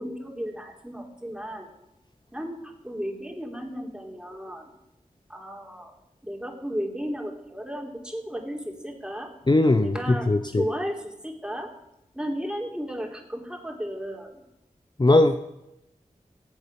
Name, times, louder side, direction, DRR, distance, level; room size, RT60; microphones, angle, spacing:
voice 1, 0.0-1.7 2.3-4.7 5.3-5.9 6.2-9.3 9.8-11.7 12.1-14.4, equal, 5° right, 2 dB, 3.2 m, -34 dB
voice 2, 9.5-10.6 15.0-15.4, left 2 dB, 30° left, 8 dB, 0.8 m, -19 dB
15.0 x 8.4 x 8.1 m, 0.87 s
cardioid pair, 45°, 15 cm